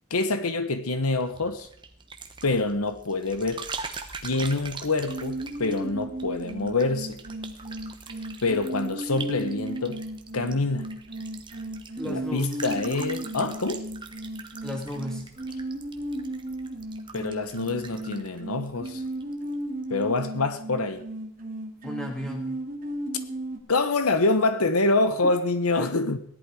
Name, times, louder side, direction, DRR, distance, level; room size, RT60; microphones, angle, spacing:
voice 1, 0.1-1.7 2.4-3.7 4.2-7.2 8.4-10.0 10.3-11.0 12.0-13.9 17.1-19.0 19.9-21.1 23.7-26.2, left 3 dB, 80° left, 1.2 m, -26 dB
sound 1, 1.2-19.5 19.8-20.2, right 5 dB, 20° right, 1.1 m, -43 dB
sound 2, 5.1-23.6, right 1 dB, 40° right, 2.4 m, -35 dB
voice 2, 12.0-12.5 14.6-15.3 21.8-22.5 25.7-25.9, equal, 5° left, 2.9 m, -34 dB
17.0 x 11.0 x 4.9 m
head